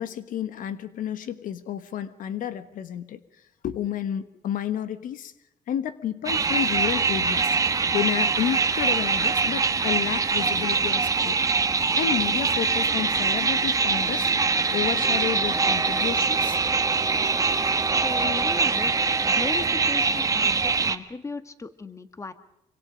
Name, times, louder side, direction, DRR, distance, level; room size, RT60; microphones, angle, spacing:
voice 1, 0.0-3.2 3.6-5.3 5.7-11.4 11.9-14.4 14.7-16.6 18.2-18.5, left 10 dB, 75° left, 12 dB, 1.3 m, -31 dB
sound 1, 6.2-21.0, right 4 dB, 25° right, 1.2 m, -23 dB
voice 2, 18.0-18.9 19.3-22.3, left 3 dB, 20° left, 11 dB, 1.6 m, -37 dB
26.0 x 25.0 x 5.1 m, 0.83 s
cardioid pair, 115°, 14 cm